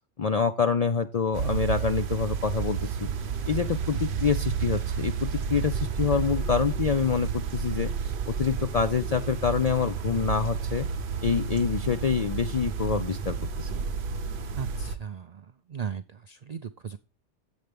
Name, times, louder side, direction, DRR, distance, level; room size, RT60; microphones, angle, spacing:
voice 1, 0.2-3.1 3.5-10.9 11.2-13.7, left 6 dB, 60° left, 9 dB, 0.4 m, -26 dB
sound 1, 1.3-15.0, right 7 dB, 50° right, 0.8 m, -31 dB
voice 2, 3.9-4.5 14.5-17.0, right 7 dB, 70° right, 11 dB, 0.4 m, -38 dB
7.8 x 7.3 x 3.3 m, 0.33 s
omnidirectional pair, 1.3 m